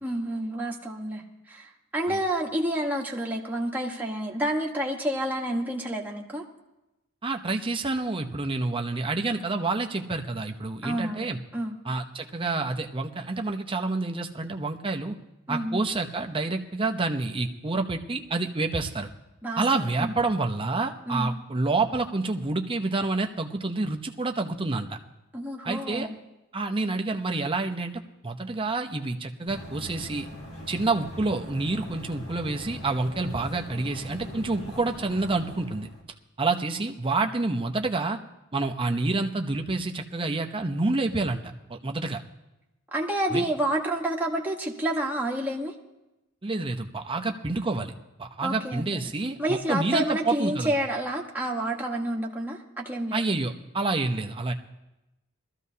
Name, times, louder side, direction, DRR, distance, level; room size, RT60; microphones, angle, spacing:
voice 1, 0.0-1.2 1.5-6.4 10.8-11.7 15.5-15.8 19.4-20.1 21.1-21.3 25.3-26.1 42.9-45.7 48.4-49.0 49.4-53.2, right 1 dB, 10° right, -1 dB, 1.3 m, -29 dB
voice 2, 7.2-11.4 11.8-15.2 15.5-19.1 19.6-25.0 25.6-26.1 26.5-30.3 30.7-35.9 36.4-38.2 38.5-42.2 43.3-43.4 46.4-47.9 48.2-50.7 53.1-54.5, right 3 dB, 25° right, 4 dB, 0.7 m, -28 dB
sound 1, 29.5-36.0, left 1 dB, 85° left, 3.2 m, -41 dB
21.0 x 14.0 x 2.8 m, 0.96 s
head